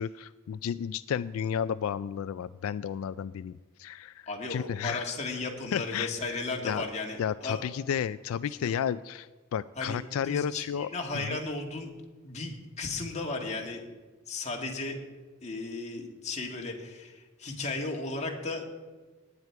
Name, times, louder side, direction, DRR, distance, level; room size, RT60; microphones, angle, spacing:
voice 1, 0.0-4.2 4.5-5.1 5.7-6.8 7.2-10.9 11.1-11.4, left 8 dB, 85° left, 15 dB, 0.3 m, -32 dB
voice 2, 4.3-7.6 8.6-8.7 9.8-10.0 10.2-11.9 12.2-13.9 14.3-15.0 15.4-18.6, left 3 dB, 35° left, 1 dB, 2.0 m, -35 dB
17.5 x 9.7 x 4.7 m, 1.3 s
head